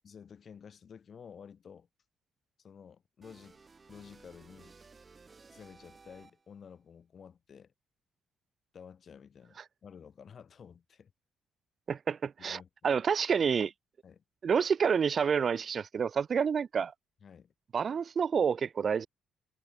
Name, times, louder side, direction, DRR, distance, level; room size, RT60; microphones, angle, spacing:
voice 1, 0.0-1.9 2.6-3.6 3.9-4.8 5.5-7.7 8.7-11.1 12.5-12.7 14.0-14.2 17.2-17.5, left 7 dB, 50° left, 6.3 m, -52 dB
sound 1, 3.2-6.6, right 4 dB, 30° right, 2.1 m, -57 dB
voice 2, 11.9-13.7 14.4-16.9 17.7-19.1, right 6 dB, 45° right, 0.7 m, -28 dB
cardioid pair, 90°, 0 cm